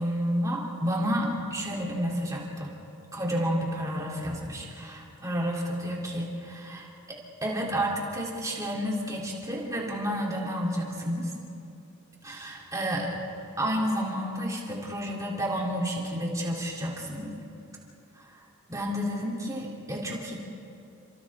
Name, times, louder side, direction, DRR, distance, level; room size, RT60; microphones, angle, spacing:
voice 1, 0.0-2.7 3.1-11.3 12.2-13.2 13.6-17.3 18.2-18.4 18.7-20.3, equal, 15° right, -3 dB, 3.6 m, -30 dB
30.0 x 26.0 x 3.8 m, 2.6 s
head